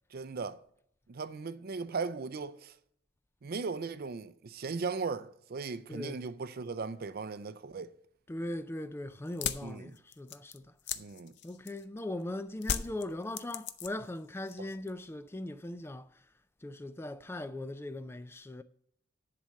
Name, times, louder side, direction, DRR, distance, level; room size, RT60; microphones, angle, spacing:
voice 1, 0.1-0.6 1.1-2.7 3.4-7.9 9.6-9.9 11.0-11.3 14.6-14.7, right 4 dB, 50° right, 0.5 m, -37 dB
voice 2, 5.9-6.2 8.3-10.7 11.4-16.1 16.6-18.6, left 1 dB, 10° left, 0.3 m, -39 dB
sound 1, 9.2-12.0 12.6-14.2 14.4-15.0, left 8 dB, 60° left, 0.6 m, -37 dB
10.5 x 4.3 x 6.3 m
head